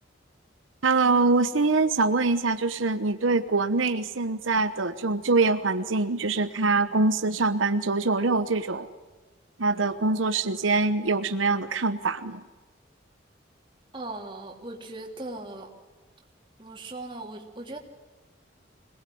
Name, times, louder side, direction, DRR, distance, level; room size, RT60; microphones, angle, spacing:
voice 1, 0.8-8.9 9.6-12.4, right 3 dB, 90° right, 9 dB, 1.1 m, -24 dB
voice 2, 13.9-15.7 16.6-17.8, right 2 dB, 25° right, 1 dB, 3.2 m, -38 dB
25.5 x 19.0 x 7.8 m, 1.3 s
head